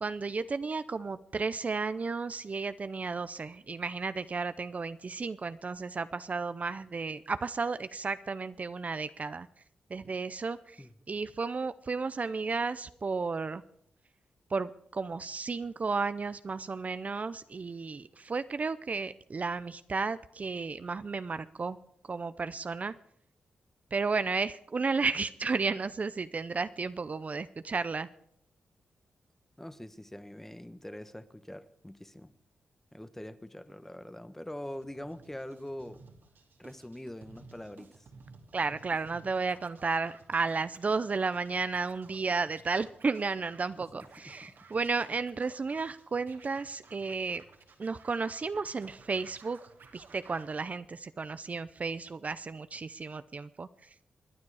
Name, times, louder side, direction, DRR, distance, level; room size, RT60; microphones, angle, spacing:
voice 1, 0.0-9.5 9.9-13.6 14.5-21.8 22.1-22.9 23.9-28.1 38.5-47.4 47.8-49.6 49.9-53.7, right 4 dB, 40° right, 13 dB, 0.6 m, -33 dB
voice 2, 29.6-32.3 32.9-36.0 36.6-38.1 43.8-44.5, left 1 dB, 10° left, 12 dB, 1.2 m, -44 dB
Scratching (performance technique), 34.6-50.5, right 4 dB, 70° right, 2.5 m, -56 dB
27.0 x 9.6 x 4.8 m, 0.70 s
cardioid pair, 70°, 4 cm